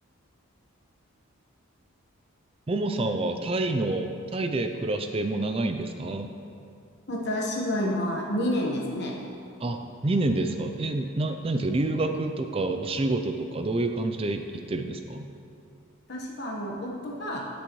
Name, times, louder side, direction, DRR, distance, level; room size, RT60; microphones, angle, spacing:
voice 1, 2.7-6.3 9.6-14.4 14.7-15.3, right 2 dB, 25° right, 6 dB, 0.4 m, -28 dB
voice 2, 7.1-9.1 16.1-17.4, left 1 dB, 50° left, -2 dB, 1.2 m, -29 dB
18.0 x 6.3 x 3.1 m, 2.5 s
head